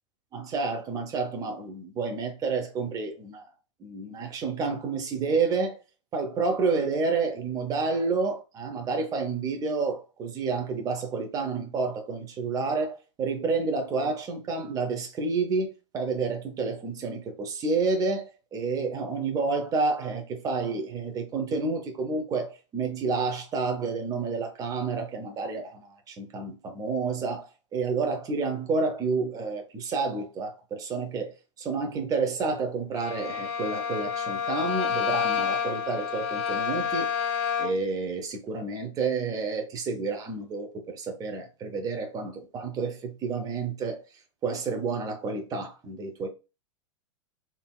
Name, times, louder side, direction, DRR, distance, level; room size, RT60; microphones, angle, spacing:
voice 1, 0.3-3.5 3.8-5.8 6.1-37.1 37.6-44.0 44.4-46.3, right 4 dB, 20° right, 0.7 m, -29 dB
Bowed string instrument, 32.9-37.9, left 7 dB, 55° left, 1.0 m, -29 dB
3.4 x 2.7 x 2.2 m
figure-of-eight pair, 100°, 16 cm